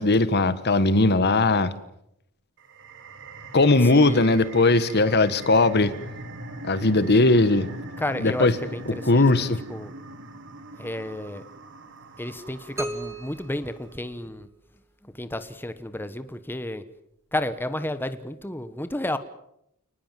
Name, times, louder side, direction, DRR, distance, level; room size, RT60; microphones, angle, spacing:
voice 1, 0.0-1.7 3.5-5.9 6.6-7.7 8.2-8.5 9.0-9.6, left 2 dB, 50° left, 14 dB, 1.4 m, -19 dB
sound 1, 2.6-13.8, right 2 dB, 60° right, 3.1 m, -41 dB
voice 2, 3.9-4.3 8.0-9.2 9.7-9.9 10.8-11.4 12.2-14.5 15.0-16.8 17.3-19.2, left 1 dB, 10° left, 11 dB, 1.2 m, -32 dB
sound 2, 12.8-14.7, right 1 dB, 15° right, 2.8 m, -36 dB
29.5 x 20.0 x 7.6 m, 0.78 s
head